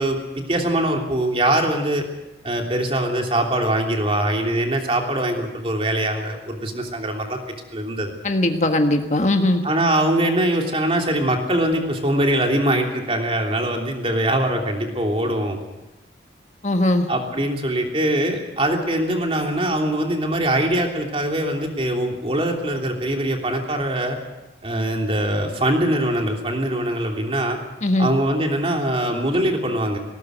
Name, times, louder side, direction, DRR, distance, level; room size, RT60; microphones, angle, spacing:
voice 1, 0.0-2.0 2.4-7.4 7.7-8.1 9.6-15.6 17.1-24.2 24.6-27.6 28.0-30.0, right 1 dB, 30° right, 2 dB, 3.1 m, -22 dB
voice 2, 8.2-9.7 16.6-17.1 27.8-28.1, left 1 dB, 40° left, 5 dB, 1.5 m, -19 dB
19.0 x 19.0 x 7.9 m, 1.0 s
head